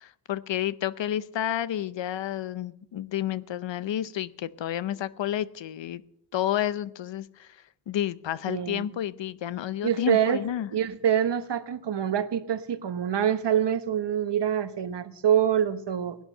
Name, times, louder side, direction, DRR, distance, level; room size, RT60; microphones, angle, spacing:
voice 1, 0.0-6.0 6.3-7.6 7.9-10.7, left 11 dB, 90° left, 17 dB, 0.7 m, -30 dB
voice 2, 8.5-8.9 9.8-10.4 10.7-16.2, right 9 dB, 70° right, 12 dB, 1.1 m, -25 dB
17.0 x 11.0 x 6.6 m, 0.75 s
wide cardioid pair, 105°, 43 cm